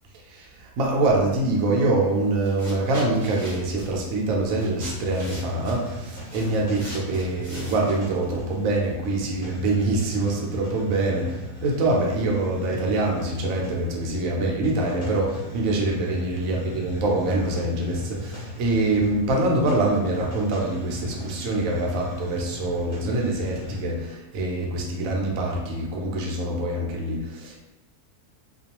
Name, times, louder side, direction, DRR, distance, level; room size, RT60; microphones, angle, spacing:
voice 1, 0.3-27.6, right 2 dB, 70° right, -1 dB, 0.9 m, -25 dB
sound 1, 2.1-2.2 2.4-8.3, equal, 25° right, 0.8 m, -42 dB
Hiss, 4.7-24.0, left 1 dB, 40° left, 0.7 m, -38 dB
2.5 x 2.2 x 2.8 m, 1.0 s
omnidirectional pair, 1.6 m